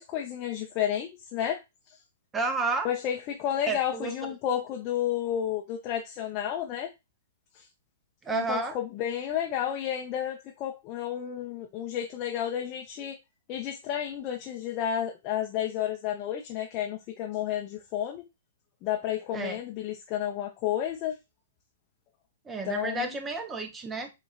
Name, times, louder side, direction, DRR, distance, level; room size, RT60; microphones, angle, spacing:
voice 1, 0.0-1.6 2.8-6.9 7.6-7.7 8.3-13.2 13.5-18.2 18.8-21.1 22.6-23.1, left 10 dB, 35° left, 0.6 m, -31 dB
voice 2, 2.3-2.9 3.7-4.3 8.2-8.8 19.3-19.6 22.5-24.1, right 3 dB, 15° right, 0.7 m, -31 dB
6.9 x 2.4 x 2.3 m
figure-of-eight pair, 110°, 0 cm